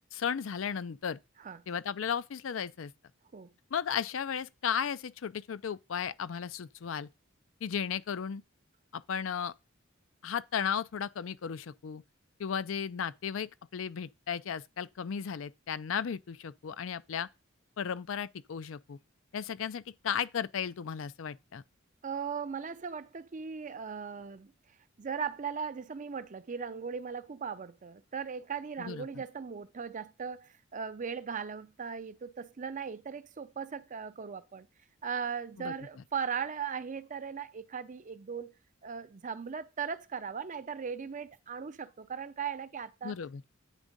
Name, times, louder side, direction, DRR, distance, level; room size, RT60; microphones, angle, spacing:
voice 1, 0.1-1.2 1.7-2.9 3.7-7.1 7.6-8.4 8.9-9.5 10.2-12.0 12.4-17.3 17.8-19.0 19.3-21.6 28.8-29.0 35.6-35.7 43.0-43.4, left 7 dB, 70° left, 0.4 m, -35 dB
voice 2, 22.0-24.5 25.0-34.7 35.0-38.5 38.8-43.1, right 6 dB, 40° right, 0.5 m, -38 dB
9.1 x 3.6 x 5.2 m
head